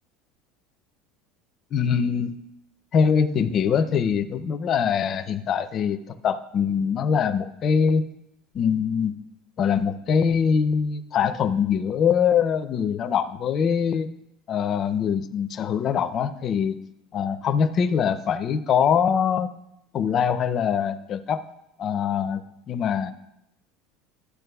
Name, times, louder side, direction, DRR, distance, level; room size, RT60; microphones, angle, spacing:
voice 1, 1.7-2.4 2.9-8.1 8.5-9.2 9.6-14.1 14.5-16.8 17.1-19.5 19.9-21.4 21.8-22.4 22.7-23.1, left 7 dB, 30° left, 9 dB, 0.4 m, -23 dB
12.5 x 8.1 x 2.3 m, 0.82 s
cardioid pair, 160°, 0 cm